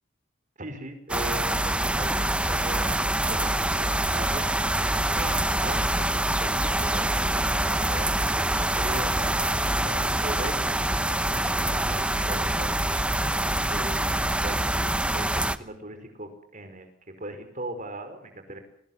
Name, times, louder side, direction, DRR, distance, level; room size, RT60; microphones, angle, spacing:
voice 1, 0.6-4.5 4.8-13.2 13.7-14.6 15.1-16.9 17.2-18.6, right 1 dB, 40° right, 8 dB, 4.8 m, -40 dB
sound 1, 1.1-15.6, right 1 dB, 5° right, 0.9 m, -25 dB
22.5 x 20.5 x 7.9 m, 0.73 s
head